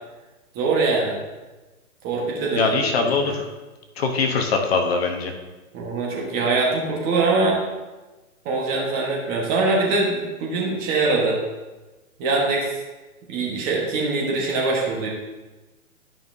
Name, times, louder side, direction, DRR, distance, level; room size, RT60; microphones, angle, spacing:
voice 1, 0.5-1.2 2.0-3.3 5.7-7.6 8.4-11.4 12.2-12.7 13.3-15.1, right 3 dB, 20° right, -3 dB, 1.3 m, -23 dB
voice 2, 2.5-3.5 4.0-5.3, left 4 dB, 45° left, 3 dB, 1.0 m, -22 dB
12.0 x 5.6 x 2.7 m, 1.2 s
hypercardioid pair, 150°, 45 cm